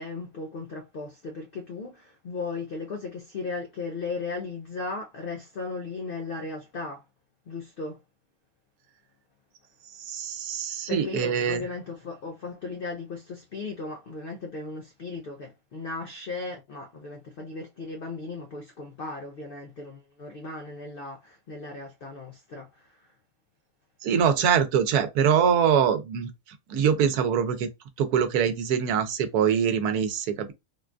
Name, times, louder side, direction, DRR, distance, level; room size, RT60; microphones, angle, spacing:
voice 1, 0.0-7.1 7.5-8.0 10.9-23.1, left 3 dB, 60° left, 0.5 m, -36 dB
voice 2, 10.0-11.6 24.0-26.3 26.7-27.7 28.0-30.5, right 7 dB, 85° right, 1.2 m, -23 dB
3.7 x 2.3 x 2.4 m
omnidirectional pair, 1.6 m